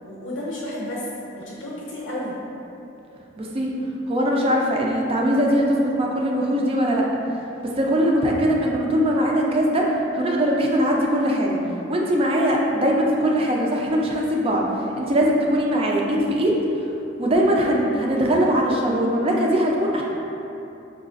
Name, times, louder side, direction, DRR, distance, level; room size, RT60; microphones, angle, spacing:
voice 1, 0.0-1.0 1.3-2.3, left 1 dB, 80° left, -6 dB, 0.5 m, -32 dB
voice 2, 3.4-3.7 4.1-7.1 7.6-11.6 11.9-16.6 17.2-20.0, equal, 30° right, -1 dB, 0.4 m, -21 dB
4.8 x 2.3 x 2.5 m, 2.9 s
head